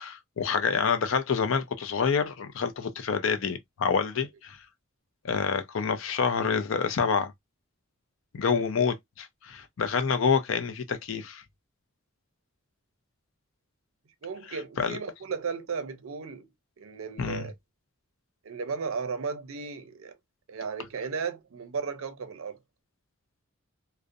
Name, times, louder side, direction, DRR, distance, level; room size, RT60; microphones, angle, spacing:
voice 1, 0.0-4.6 5.2-7.3 8.3-11.4 14.8-15.0 17.2-17.5, left 6 dB, 65° left, 0.5 m, -27 dB
voice 2, 14.2-16.5 16.8-17.5 18.4-20.1 20.5-22.6, right 5 dB, 70° right, 0.5 m, -35 dB
2.4 x 2.1 x 2.5 m
head